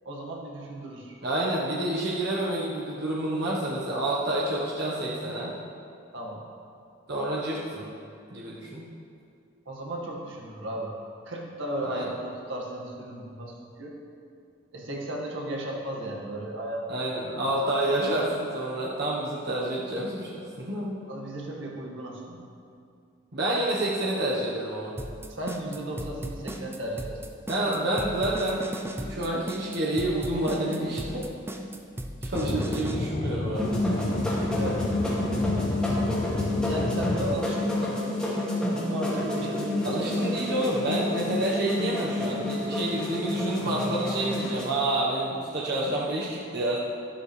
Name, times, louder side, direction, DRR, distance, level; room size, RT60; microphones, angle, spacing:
voice 1, 0.1-1.2 6.1-6.5 9.7-10.9 11.3-13.9 14.7-16.8 17.4-17.7 21.1-22.4 25.3-27.2 34.5-34.8 36.7-38.2 38.7-40.3, right 1 dB, 80° right, -2 dB, 1.9 m, -35 dB
voice 2, 1.2-5.5 7.1-7.9 8.3-8.9 11.8-12.1 16.9-21.0 23.3-24.9 27.5-31.3 32.2-33.8 39.8-46.8, right 1 dB, 55° right, -4 dB, 1.2 m, -28 dB
sound 1, 25.0-33.0, right 1 dB, 10° right, 0.6 m, -36 dB
Aircraft / Engine, 32.4-37.4, left 2 dB, 35° left, 0.5 m, -31 dB
sound 2, 33.5-44.6, left 1 dB, 5° left, 2.3 m, -29 dB
13.0 x 12.0 x 3.3 m, 2.4 s
head